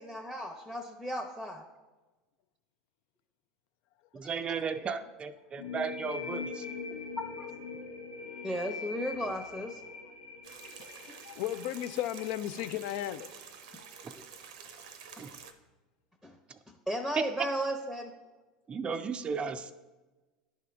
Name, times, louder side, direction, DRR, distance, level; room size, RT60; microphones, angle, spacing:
voice 1, 0.0-1.7 4.2-4.3 7.2-7.5 8.4-9.8 11.0-11.1 14.1-14.2 16.2-16.4 16.9-18.1, equal, 5° left, 3 dB, 0.8 m, -35 dB
voice 2, 4.1-6.7 14.0-14.1 15.2-15.3 17.2-17.3 18.7-19.7, right 6 dB, 30° right, 9 dB, 0.4 m, -35 dB
sound 1, 5.6-13.0, left 4 dB, 90° left, 0.7 m, -42 dB
sound 2, 10.4-15.5, right 7 dB, 75° right, 0.6 m, -49 dB
voice 3, 10.8-13.3 14.7-14.8, left 13 dB, 65° left, 13 dB, 0.4 m, -36 dB
10.5 x 3.7 x 3.4 m, 1.2 s
hypercardioid pair, 85°, 4 cm